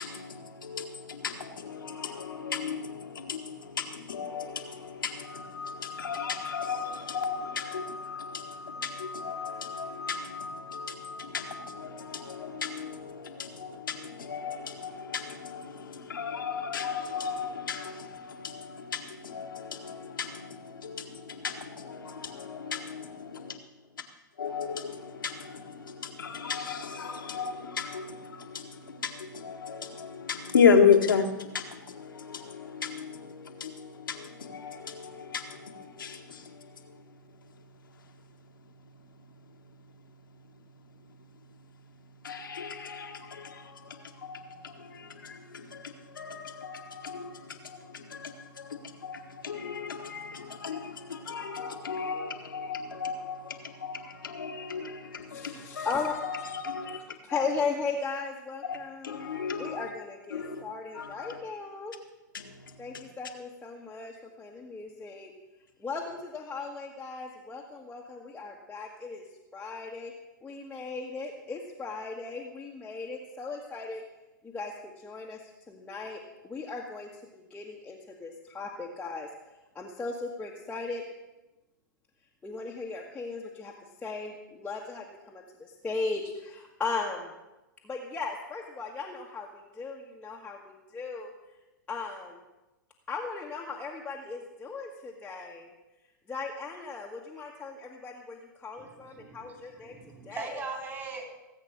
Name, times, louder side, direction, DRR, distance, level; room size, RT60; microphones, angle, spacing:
voice 1, 0.0-23.6 24.4-37.0 42.2-57.0 57.3-57.4 58.6-58.8 59.0-59.9 60.3-60.6 60.9-61.4 62.3-63.0, left 6 dB, 85° left, 2 dB, 1.8 m, -33 dB
sound 1, 5.2-13.0, left 4 dB, 5° right, 2.5 m, -42 dB
voice 2, 55.3-56.5 56.9-59.3 59.6-61.9 62.8-65.3 65.8-69.2 69.5-70.1 70.4-74.0 74.4-74.7 75.0-75.4 75.7-76.2 76.4-79.3 79.7-81.0 82.4-83.7 84.0-87.3 87.8-89.5 89.7-91.3 91.9-92.4 93.1-95.7 96.3-99.9 100.2-100.6, left 4 dB, 10° left, -3 dB, 1.6 m, -37 dB
voice 3, 98.8-101.2, right 4 dB, 20° right, 1 dB, 4.2 m, -40 dB
17.5 x 8.2 x 6.6 m, 1.0 s
hypercardioid pair, 110°, 11 cm